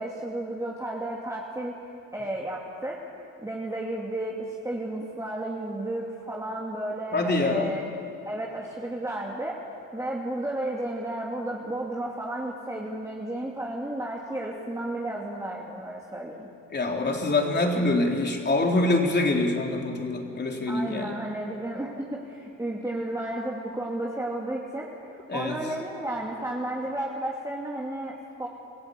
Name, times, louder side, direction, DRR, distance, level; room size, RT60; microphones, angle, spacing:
voice 1, 0.0-1.7 2.1-3.1 3.4-7.8 8.2-9.6 9.9-16.5 20.7-28.5, right 1 dB, 10° right, -3 dB, 2.7 m, -33 dB
voice 2, 7.1-7.7 16.7-21.2 25.3-25.6, left 2 dB, 35° left, 1 dB, 3.9 m, -25 dB
27.0 x 16.5 x 8.5 m, 2.5 s
cardioid pair, 90°, 30 cm